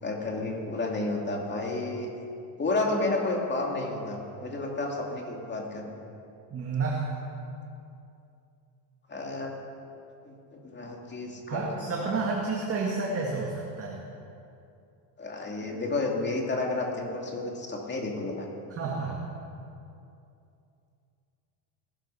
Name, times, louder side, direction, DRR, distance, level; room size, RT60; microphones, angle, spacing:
voice 1, 0.0-2.1 2.6-6.0 9.1-9.5 10.2-11.7 12.0-12.1 15.2-18.5, left 2 dB, 20° left, 0 dB, 2.7 m, -31 dB
voice 2, 6.5-7.2 11.5-14.0 18.7-19.2, right 4 dB, 30° right, -1 dB, 1.8 m, -30 dB
18.0 x 13.0 x 5.7 m, 2.6 s
cardioid pair, 135°, 49 cm